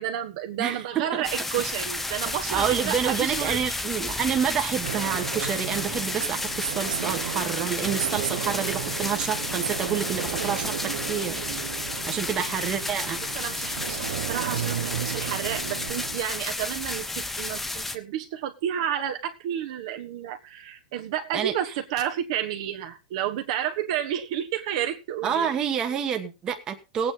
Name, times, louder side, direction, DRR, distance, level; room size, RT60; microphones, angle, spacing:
voice 1, 0.0-3.8 13.3-25.5, right 10 dB, 45° right, 6 dB, 1.4 m, -31 dB
voice 2, 0.6-1.2 2.5-11.4 12.1-13.2 21.3-21.5 25.2-27.1, right 8 dB, 20° right, 5 dB, 1.4 m, -28 dB
sound 1, 1.2-18.0, left 2 dB, 5° left, 0.8 m, -32 dB
sound 2, 4.8-16.2, right 10 dB, 80° right, 1.1 m, -34 dB
17.5 x 9.1 x 3.9 m, 0.29 s
supercardioid pair, 170°, 4 cm